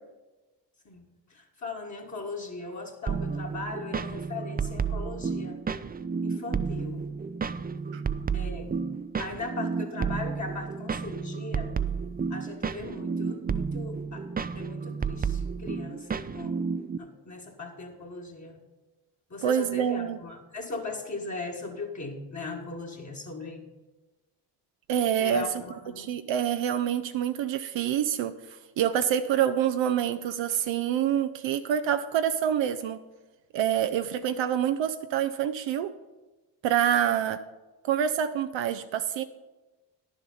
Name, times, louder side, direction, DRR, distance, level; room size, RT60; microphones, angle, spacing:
voice 1, 1.3-5.6 6.2-7.1 8.3-8.7 9.2-11.8 12.3-14.3 14.5-16.6 17.0-18.6 19.3-23.7 25.2-26.1, left 3 dB, 35° left, -1 dB, 1.7 m, -38 dB
sound 1, 3.1-17.0, right 5 dB, 20° right, 0.4 m, -31 dB
voice 2, 19.4-20.2 24.9-25.5 26.0-28.3 28.8-33.0 33.5-35.9 36.6-37.4 37.8-39.2, right 9 dB, 70° right, 10 dB, 0.6 m, -26 dB
10.5 x 7.2 x 5.5 m, 1.2 s
supercardioid pair, 50°, 47 cm